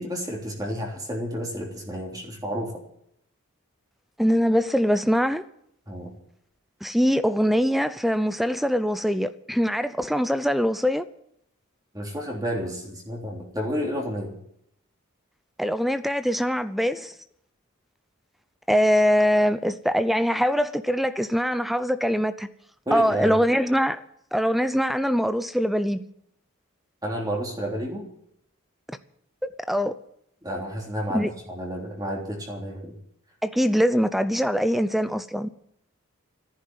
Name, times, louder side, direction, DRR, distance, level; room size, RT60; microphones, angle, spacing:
voice 1, 0.0-2.8 5.9-6.1 11.9-14.4 22.9-23.4 27.0-28.1 30.4-32.9, equal, 15° right, 3.4 m, -31 dB
voice 2, 4.2-5.4 6.8-11.0 15.6-17.1 18.7-22.5 22.9-24.0 24.3-26.0 29.4-29.9 31.1-31.3 33.4-35.5, equal, ahead, 0.6 m, -23 dB
14.5 x 10.5 x 9.4 m
head